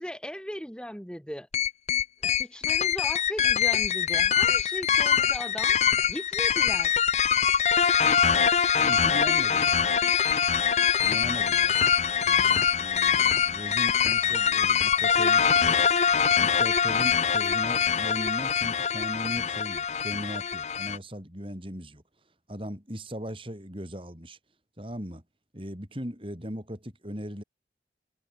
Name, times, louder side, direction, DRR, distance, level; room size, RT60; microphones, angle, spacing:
voice 1, 0.0-1.5 2.2-5.8 6.1-6.9, equal, 5° left, 2.8 m, -38 dB
sound 1, 1.5-21.0, left 7 dB, 40° left, 0.7 m, -23 dB
voice 2, 8.8-9.8 11.0-11.8 12.2-15.8 16.3-22.0 22.5-24.4 24.8-25.2 25.5-27.4, equal, 30° right, 7.9 m, -38 dB
head